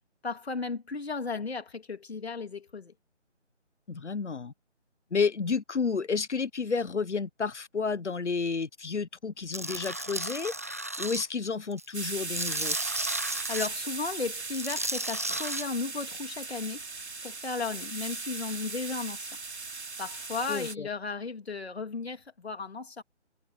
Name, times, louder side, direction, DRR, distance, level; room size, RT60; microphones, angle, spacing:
voice 1, 0.2-2.9 13.5-16.8 17.2-19.3 20.0-23.0, left 4 dB, 60° left, 3.0 m, -35 dB
voice 2, 3.9-4.5 5.1-12.8 20.5-20.9, left 5 dB, 75° left, 1.1 m, -31 dB
Tools, 9.5-11.2 11.7-13.7 14.5-15.6, right 1 dB, 15° right, 0.7 m, -34 dB
sound 1, 11.9-20.8, right 3 dB, 65° right, 3.2 m, -37 dB
figure-of-eight pair, 160°, 36 cm